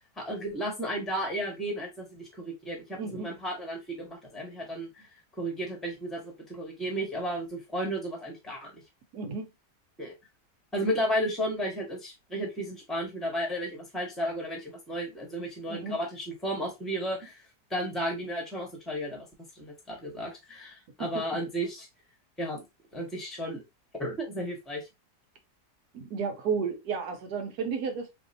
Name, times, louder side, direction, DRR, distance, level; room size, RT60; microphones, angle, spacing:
voice 1, 0.2-5.1 5.3-8.8 10.0-10.1 10.7-17.4 17.7-19.3 19.5-21.9 22.4-22.6 22.9-23.6 24.0-24.9, equal, ahead, 1.0 m, -33 dB
voice 2, 3.0-3.3 9.1-9.5 15.7-16.0 25.9-28.1, right 5 dB, 75° right, 1.2 m, -32 dB
4.2 x 2.6 x 2.6 m
omnidirectional pair, 1.7 m